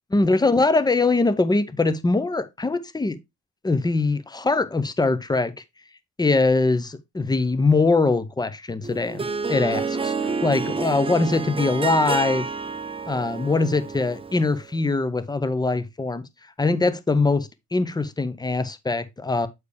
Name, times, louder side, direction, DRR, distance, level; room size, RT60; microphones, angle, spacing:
voice 1, 0.1-3.2 3.6-5.5 6.2-12.5 13.1-16.3 16.6-19.5, left 3 dB, 15° left, 0.8 m, -22 dB
Harp, 8.8-14.6, right 5 dB, 20° right, 0.6 m, -29 dB
8.2 x 4.6 x 3.3 m
cardioid pair, 90°, 30 cm